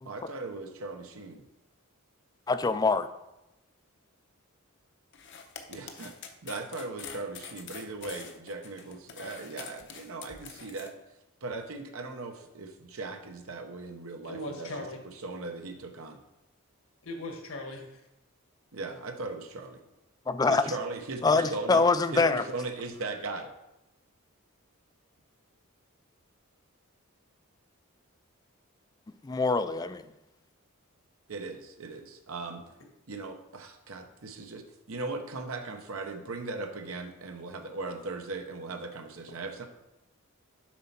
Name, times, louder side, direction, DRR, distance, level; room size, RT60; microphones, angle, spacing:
voice 1, 0.0-1.4 5.7-6.1 6.4-10.9 11.4-14.7 15.0-16.2 18.7-19.8 20.5-21.8 22.1-23.5 31.3-32.6 33.1-34.6 34.9-39.6, right 3 dB, 80° right, 5 dB, 0.9 m, -38 dB
voice 2, 2.5-3.1 20.3-20.6 21.2-22.4 29.2-30.0, left 4 dB, 20° left, 12 dB, 0.3 m, -24 dB
sound 1, 5.1-10.9, left 7 dB, 55° left, 0.8 m, -45 dB
voice 3, 14.2-15.0 17.0-18.0, left 1 dB, 75° left, 2 dB, 1.6 m, -39 dB
7.4 x 4.3 x 5.8 m, 0.94 s
head